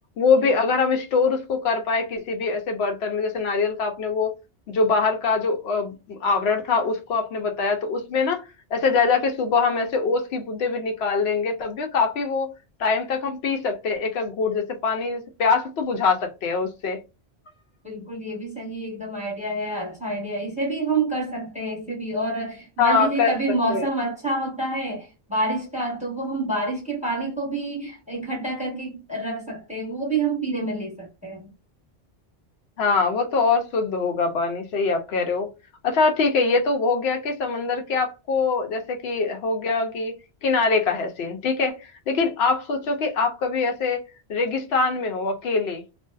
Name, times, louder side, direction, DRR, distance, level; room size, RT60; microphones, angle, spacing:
voice 1, 0.2-4.3 4.7-8.4 8.7-12.5 12.8-17.0 22.8-23.3 23.7-23.9 32.8-35.5 35.8-40.1 40.4-44.0 44.3-45.8, left 4 dB, 75° left, 0.8 m, -23 dB
voice 2, 17.8-31.5, right 2 dB, 5° right, 0.9 m, -28 dB
2.5 x 2.2 x 2.2 m
omnidirectional pair, 1.1 m